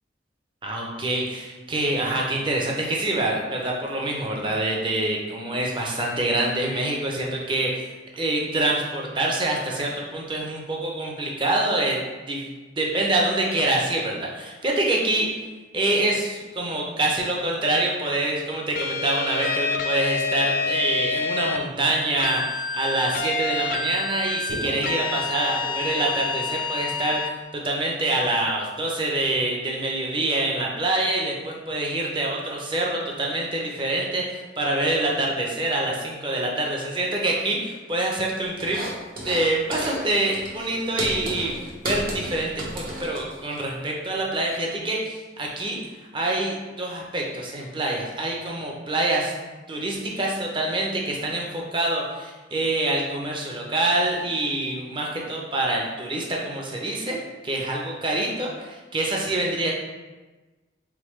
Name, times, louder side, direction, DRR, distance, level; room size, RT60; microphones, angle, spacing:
voice 1, 0.6-12.0 12.3-12.4 12.8-15.3 15.7-38.8 39.2-41.5 41.8-45.8 46.1-49.3 49.7-57.2 57.4-59.7, right 2 dB, 30° right, -1 dB, 0.7 m, -26 dB
sound 1, 18.8-21.6 22.2-27.3, left 4 dB, 50° left, 0.3 m, -28 dB
sound 2, 24.5-26.4, equal, 75° right, 0.8 m, -38 dB
sound 3, 38.6-39.4 39.7-40.0 40.3-43.6, right 1 dB, 55° right, 1.0 m, -33 dB
3.8 x 3.7 x 3.2 m, 1.2 s
head